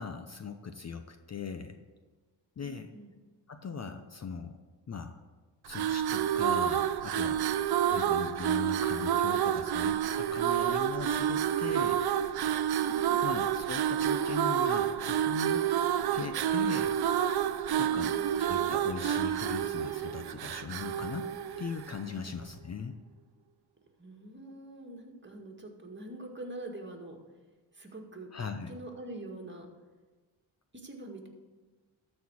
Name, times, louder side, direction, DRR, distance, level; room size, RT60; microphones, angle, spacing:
voice 1, 0.0-1.8 2.6-2.9 3.5-4.6 4.9-5.2 5.7-7.4 7.9-12.6 13.2-15.7 16.1-16.9 17.8-21.3 21.6-23.0 28.3-28.7, left 5 dB, 35° left, 8 dB, 0.7 m, -40 dB
voice 2, 2.6-3.1 7.8-8.1 12.8-13.3 17.8-18.5 24.0-27.2 27.7-29.7 30.7-31.3, right 1 dB, 25° right, 2 dB, 1.9 m, -45 dB
sound 1, 5.6-22.1, right 10 dB, 55° right, 0.6 m, -29 dB
12.5 x 4.3 x 6.4 m, 1.3 s
cardioid pair, 75°, 46 cm